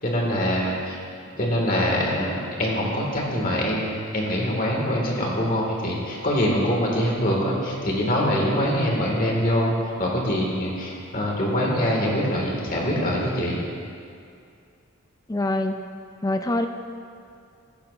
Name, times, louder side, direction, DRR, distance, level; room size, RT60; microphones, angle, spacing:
voice 1, 0.0-1.0 1.4-9.7 10.0-13.6, equal, 40° left, -2 dB, 1.9 m, -24 dB
voice 2, 15.3-15.8 16.2-16.7, left 2 dB, 15° left, 6 dB, 0.4 m, -24 dB
14.5 x 12.0 x 2.5 m, 2.4 s
head